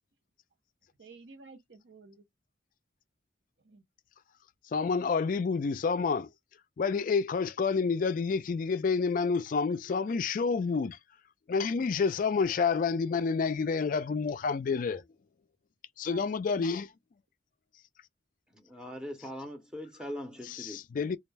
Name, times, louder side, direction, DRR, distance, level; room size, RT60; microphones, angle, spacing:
voice 1, 1.0-2.2 3.6-3.8 16.1-16.7, right 4 dB, 70° right, 0.7 m, -52 dB
voice 2, 4.7-6.3 6.8-11.0 11.5-15.0 16.0-16.9 20.5-21.2, left 5 dB, 45° left, 0.3 m, -29 dB
voice 3, 18.5-20.8, equal, 5° right, 0.7 m, -41 dB
2.3 x 2.1 x 3.2 m
head